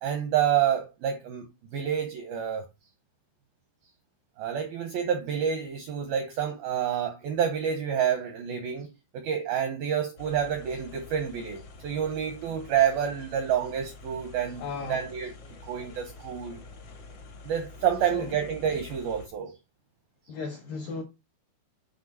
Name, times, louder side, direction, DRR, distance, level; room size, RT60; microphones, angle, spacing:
voice 1, 0.0-1.5 1.7-2.7 4.4-8.9 9.1-14.6 14.9-15.3 15.7-16.6 17.4-19.5, right 8 dB, 85° right, 2.1 m, -28 dB
sound 1, 10.2-19.3, left 3 dB, 65° left, 1.4 m, -47 dB
voice 2, 14.6-15.1 18.1-18.3 20.3-21.0, left 4 dB, 85° left, 1.9 m, -35 dB
9.1 x 4.8 x 4.1 m
omnidirectional pair, 5.6 m